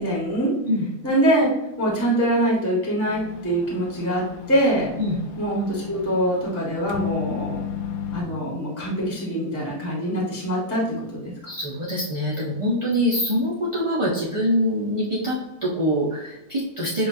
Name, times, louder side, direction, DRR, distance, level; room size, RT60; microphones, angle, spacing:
voice 1, 0.0-0.5 1.0-1.5 1.8-4.9 5.4-7.7 8.1-11.3, right 1 dB, 10° left, -5 dB, 1.3 m, -24 dB
sound 1, 3.1-8.2, left 9 dB, 70° left, 1.0 m, -34 dB
voice 2, 11.4-17.1, equal, 30° right, -7 dB, 0.6 m, -24 dB
7.1 x 2.5 x 2.7 m, 0.93 s
omnidirectional pair, 1.7 m